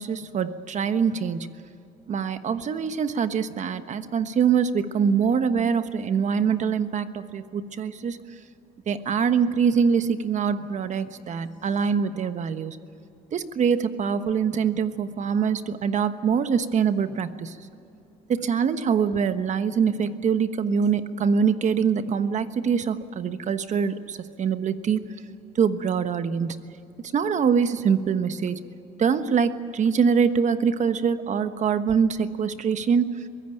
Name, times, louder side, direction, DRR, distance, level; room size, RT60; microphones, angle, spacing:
voice 1, 0.0-1.5 2.1-8.2 8.9-12.8 13.3-17.5 18.3-25.0 25.6-26.6 27.1-28.6 29.0-33.2, right 6 dB, 45° right, 11 dB, 1.2 m, -24 dB
23.0 x 16.0 x 9.3 m, 2.7 s
cardioid pair, 110°, 17 cm